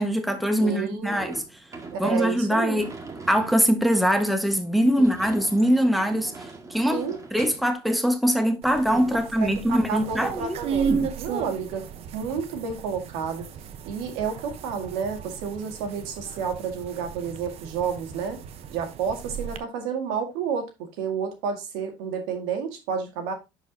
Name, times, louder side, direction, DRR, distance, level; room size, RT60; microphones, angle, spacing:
voice 1, 0.0-1.4 2.0-2.9 3.3-6.3 6.7-7.0 7.3-10.6 10.9-11.1, equal, ahead, 1.4 m, -22 dB
voice 2, 0.6-1.4 1.9-2.8 5.0-5.3 6.9-7.2 9.4-9.5 9.9-11.8 12.1-13.4 13.9-18.4 18.7-20.7 21.0-23.3, right 6 dB, 80° right, 2.0 m, -30 dB
Sliding door / Slam, 1.1-7.7, right 4 dB, 25° right, 1.9 m, -43 dB
sound 1, 8.6-19.6, right 7 dB, 60° right, 1.0 m, -35 dB
10.5 x 4.9 x 2.8 m
supercardioid pair, 85°, 12 cm